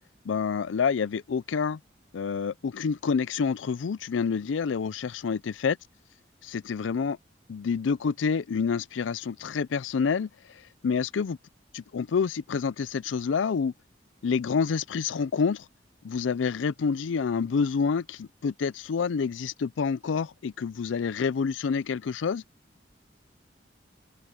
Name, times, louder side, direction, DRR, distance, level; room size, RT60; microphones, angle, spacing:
voice 1, 0.3-1.8 2.1-5.8 6.4-7.2 7.5-10.3 10.8-11.4 11.7-13.7 14.2-15.6 16.0-22.4, left 5 dB, 85° left, 0.4 m, -28 dB
open air
head